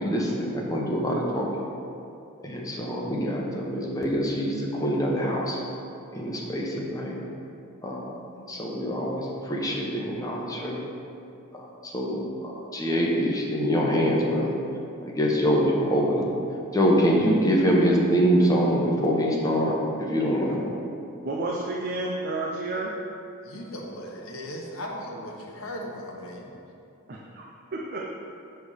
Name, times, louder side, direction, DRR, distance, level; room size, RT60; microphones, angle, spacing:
voice 1, 0.0-1.5 2.4-5.6 6.1-7.2 7.8-8.1 8.5-10.8 11.5-14.5 15.0-16.2 16.7-19.7 20.0-20.7, equal, 15° left, -3 dB, 1.0 m, -25 dB
voice 2, 21.2-22.9 27.1-28.1, right 2 dB, 45° right, -2 dB, 0.6 m, -31 dB
voice 3, 23.4-26.5, equal, 75° left, -1 dB, 1.1 m, -37 dB
7.3 x 3.4 x 6.4 m, 2.6 s
head